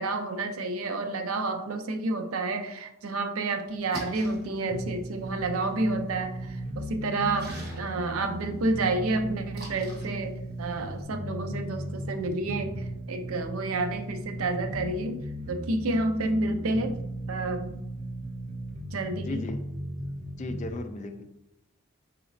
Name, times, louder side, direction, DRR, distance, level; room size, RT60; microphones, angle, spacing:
voice 1, 0.0-6.3 6.7-15.2 15.5-17.0 17.3-17.8 18.9-19.4, right 2 dB, 80° right, 6 dB, 0.5 m, -30 dB
Splash splatter, 3.7-11.0, right 1 dB, 45° right, 1.1 m, -47 dB
sound 1, 4.7-20.7, right 1 dB, 30° right, 0.5 m, -37 dB
voice 2, 19.3-19.7 20.4-21.2, left 2 dB, 35° left, 7 dB, 0.3 m, -36 dB
4.2 x 3.9 x 2.6 m, 0.85 s
head